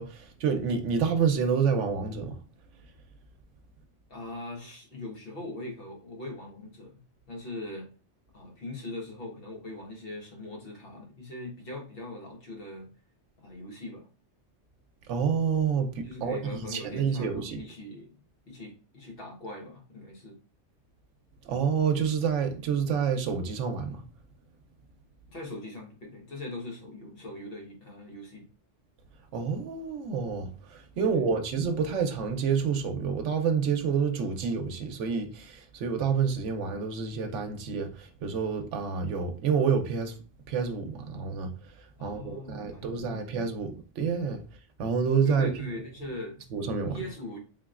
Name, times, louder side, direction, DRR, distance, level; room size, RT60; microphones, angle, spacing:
voice 1, 0.0-2.4 15.1-17.6 21.4-24.0 29.3-40.1 40.5-41.5 42.0-44.4 44.8-45.6 46.5-47.0, right 6 dB, 75° right, 1.0 m, -28 dB
voice 2, 4.1-7.9 8.3-12.9 13.4-14.1 16.0-18.2 18.5-20.4 25.3-28.5 31.0-31.4 42.0-43.3 45.2-46.5 46.9-47.4, left 2 dB, 50° left, 1.1 m, -41 dB
3.9 x 3.0 x 2.3 m
omnidirectional pair, 1.3 m